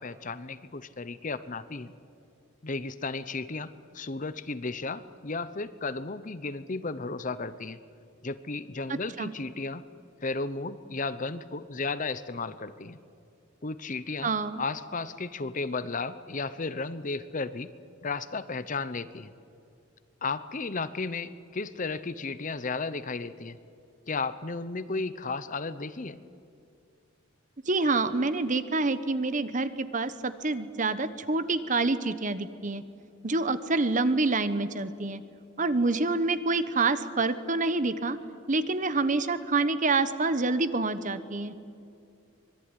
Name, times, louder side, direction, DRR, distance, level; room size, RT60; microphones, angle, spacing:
voice 1, 0.0-1.9 2.6-7.8 8.2-9.9 10.2-13.0 13.6-14.3 14.6-17.7 18.0-19.3 20.2-23.6 24.1-26.2, left 3 dB, 40° left, 14 dB, 0.8 m, -34 dB
voice 2, 8.9-9.3 14.2-14.6 27.7-32.8 33.2-35.2 35.6-38.2 38.5-41.5, right 3 dB, 40° right, 12 dB, 1.1 m, -27 dB
25.0 x 22.0 x 9.9 m, 2.5 s
head